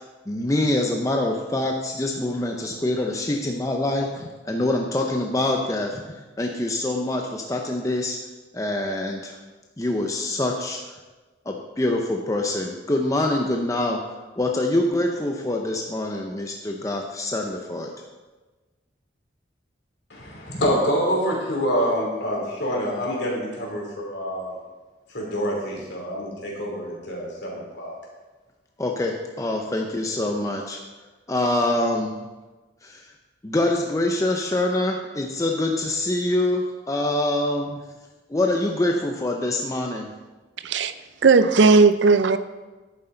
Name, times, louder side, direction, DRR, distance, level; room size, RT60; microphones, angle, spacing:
voice 1, 0.3-8.2 8.5-9.4 9.8-10.8 11.5-14.0 14.4-17.9 28.8-30.8 31.3-32.1 32.8-33.1 33.4-37.8 38.3-40.1, left 1 dB, 15° left, 2 dB, 0.6 m, -25 dB
voice 2, 20.1-24.5 25.1-27.9, equal, 65° left, -2 dB, 3.0 m, -26 dB
voice 3, 41.2-42.4, right 4 dB, 75° right, 12 dB, 0.5 m, -16 dB
10.5 x 8.6 x 3.9 m, 1.2 s
head